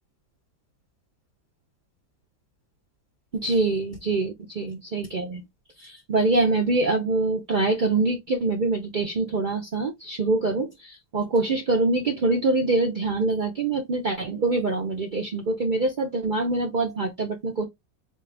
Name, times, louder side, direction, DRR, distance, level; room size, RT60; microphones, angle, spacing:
voice 1, 3.3-5.4 5.8-17.6, right 3 dB, 65° right, 0.4 m, -24 dB
4.4 x 2.4 x 3.2 m
omnidirectional pair, 1.9 m